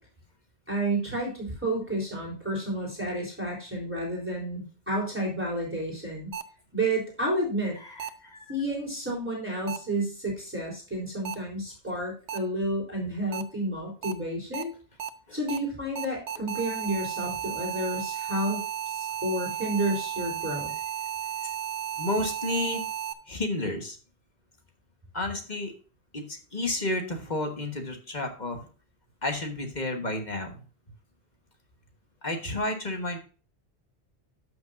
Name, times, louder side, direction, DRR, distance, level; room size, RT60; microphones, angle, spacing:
voice 1, 0.7-6.3 6.7-7.8 8.5-14.7 15.3-18.6 18.9-20.7, right 1 dB, 10° right, -4 dB, 3.5 m, -30 dB
sound 1, 6.3-6.4 8.0-8.1 9.7-9.8 11.2-11.3 12.3-12.4 13.3-13.4 14.0-14.1 14.5-14.6 15.0-15.1 15.5-15.6 16.0-23.1, right 9 dB, 85° right, 1.1 m, -33 dB
voice 2, 7.8-8.5 15.3-15.4 22.0-22.8 23.3-24.0 25.1-25.7 26.1-28.6 29.2-30.6 32.2-33.2, left 1 dB, 40° left, 3 dB, 1.5 m, -31 dB
13.5 x 6.2 x 2.6 m, 0.37 s
omnidirectional pair, 1.1 m